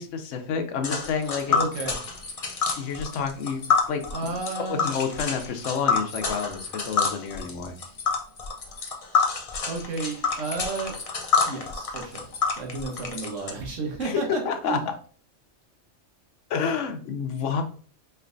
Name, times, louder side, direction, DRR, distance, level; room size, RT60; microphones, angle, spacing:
voice 1, 0.0-1.6 2.8-4.1 4.7-7.7 14.0-14.8 16.5-17.6, left 6 dB, 80° left, 7 dB, 1.0 m, -29 dB
Tick, 0.8-13.5, left 5 dB, 40° left, 0.5 m, -27 dB
voice 2, 1.5-2.0 4.1-4.9 9.7-11.0 11.5-12.3 12.6-14.8, right 3 dB, 85° right, 2 dB, 1.4 m, -32 dB
4.5 x 3.3 x 2.5 m, 0.44 s
omnidirectional pair, 1.3 m